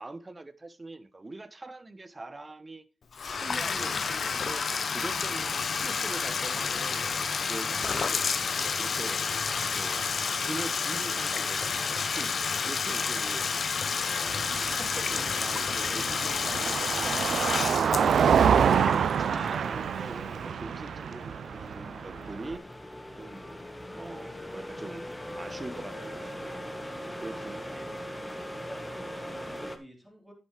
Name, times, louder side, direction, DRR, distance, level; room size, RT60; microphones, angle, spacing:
voice 1, 0.0-2.8 3.3-7.0 7.5-8.3 8.8-9.2 9.7-10.1 10.4-12.3 12.6-13.5 14.0-14.4 14.7-18.7 19.3-22.7 23.2-23.6 24.0-25.1 25.4-26.6 27.0-27.9, right 2 dB, 25° right, 1.0 m, -42 dB
Bathtub (filling or washing), 3.1-19.9, left 5 dB, 60° left, 0.7 m, -30 dB
Car passing by, 14.3-22.6, right 7 dB, 75° right, 0.5 m, -27 dB
sound 1, 18.2-29.8, equal, 15° left, 1.3 m, -41 dB
voice 2, 27.3-27.9 28.7-30.3, equal, 5° right, 4.0 m, -50 dB
10.5 x 9.0 x 3.2 m
cardioid pair, 70°, 0 cm